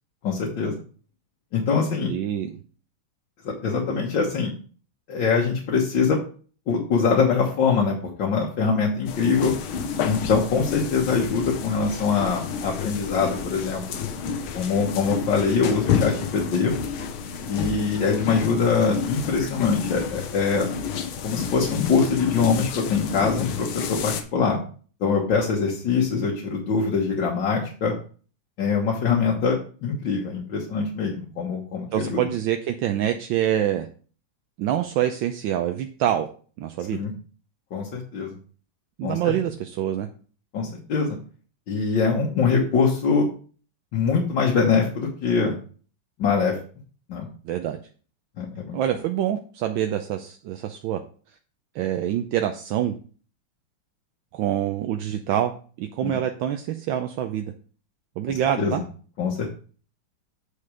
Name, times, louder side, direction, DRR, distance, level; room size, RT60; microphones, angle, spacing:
voice 1, 0.2-0.7 1.5-2.1 3.5-4.5 5.1-6.2 6.7-9.5 10.0-13.8 14.5-16.7 17.5-20.7 21.2-24.6 25.0-27.9 28.6-29.6 29.8-32.2 36.9-37.1 37.7-38.3 39.0-39.3 40.5-41.2 41.7-43.3 43.9-45.6 46.2-46.6 47.1-47.3 48.4-48.8 56.0-56.2 58.6-58.7 59.2-59.5, left 5 dB, 65° left, -3 dB, 1.9 m, -23 dB
voice 2, 2.0-2.6 31.9-33.9 34.6-36.3 36.6-37.0 39.0-40.1 47.4-47.8 48.7-51.0 51.7-53.0 54.3-55.5 55.8-57.5 58.2-58.8, right 11 dB, 75° right, 6 dB, 1.3 m, -26 dB
sound 1, 9.1-24.2, left 7 dB, 85° left, 1.7 m, -30 dB
8.3 x 4.3 x 4.9 m, 0.40 s
omnidirectional pair, 2.2 m